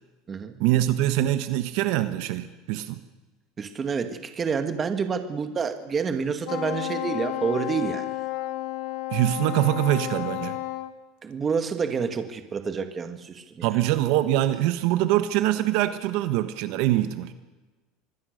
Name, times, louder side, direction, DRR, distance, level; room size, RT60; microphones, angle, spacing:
voice 1, 0.6-3.0 9.1-10.6 13.6-17.3, right 14 dB, 60° right, 10 dB, 1.4 m, -24 dB
voice 2, 3.6-8.1 11.2-13.7, right 6 dB, 20° right, 8 dB, 1.9 m, -28 dB
Wind instrument woodwind instrument, 6.4-10.9, left 15 dB, 65° left, 1.6 m, -32 dB
25.5 x 20.5 x 6.7 m, 1.2 s
cardioid pair, 155°, 0 cm